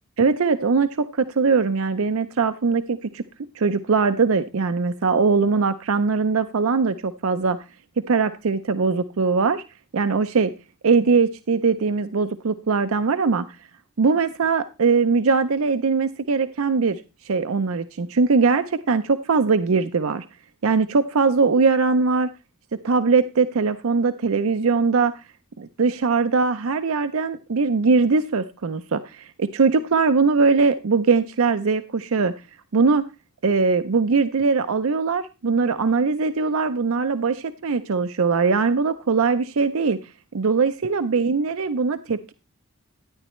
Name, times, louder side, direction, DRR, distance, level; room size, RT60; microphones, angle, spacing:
voice 1, 0.2-3.2 3.5-7.6 8.1-9.6 9.9-10.5 10.8-13.5 14.0-20.2 20.6-22.3 22.8-25.2 25.6-32.3 32.7-33.0 33.4-40.0 40.3-42.3, right 4 dB, 75° right, 10 dB, 0.5 m, -21 dB
12.0 x 10.0 x 3.1 m, 0.28 s
head